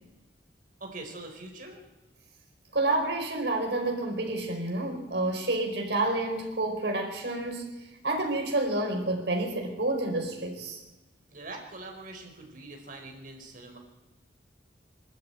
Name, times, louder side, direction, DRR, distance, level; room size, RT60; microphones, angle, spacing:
voice 1, 0.8-1.8 11.3-13.8, right 2 dB, 50° right, 3 dB, 4.7 m, -43 dB
voice 2, 2.7-10.8, right 2 dB, 70° right, 2 dB, 4.9 m, -29 dB
24.0 x 12.5 x 9.2 m, 1.0 s
head